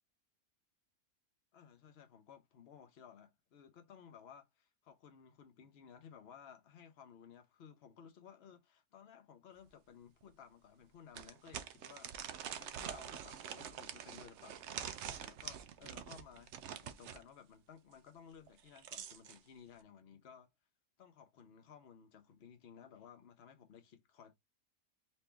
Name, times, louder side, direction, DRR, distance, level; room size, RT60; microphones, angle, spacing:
voice 1, 1.5-12.2 12.4-14.7 15.0-20.5 21.0-24.3, left 7 dB, 50° left, 1.0 m, -57 dB
sound 1, 9.7-9.8 10.2-10.3 11.1-17.2 18.5-19.4, right 9 dB, 65° right, 0.8 m, -46 dB
4.2 x 2.7 x 3.3 m
omnidirectional pair, 1.6 m